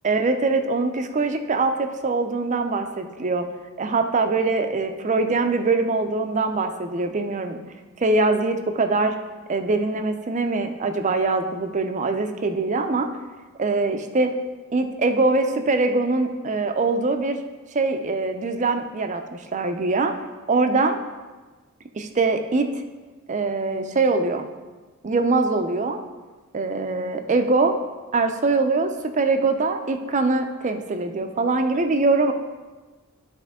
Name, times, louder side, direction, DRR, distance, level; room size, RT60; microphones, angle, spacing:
voice 1, 0.0-3.4 3.8-7.6 8.0-9.2 9.5-13.1 13.6-14.3 14.7-17.4 17.7-20.1 20.5-21.0 22.0-22.7 23.3-24.5 25.0-26.0 26.5-27.7 28.1-32.3, right 3 dB, 35° right, 7 dB, 0.5 m, -23 dB
11.5 x 4.3 x 3.6 m, 1.3 s
head